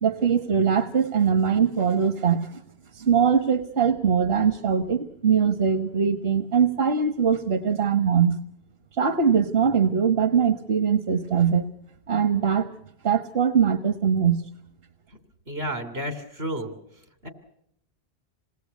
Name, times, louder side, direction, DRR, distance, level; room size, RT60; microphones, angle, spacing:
voice 1, 0.0-2.6 2.9-8.4 8.9-11.7 12.1-12.7 13.0-14.4, right 7 dB, 75° right, 10 dB, 1.4 m, -22 dB
voice 2, 15.5-16.7 17.2-17.3, right 1 dB, 90° right, 8 dB, 3.5 m, -31 dB
28.0 x 19.5 x 8.3 m, 0.73 s
omnidirectional pair, 1.0 m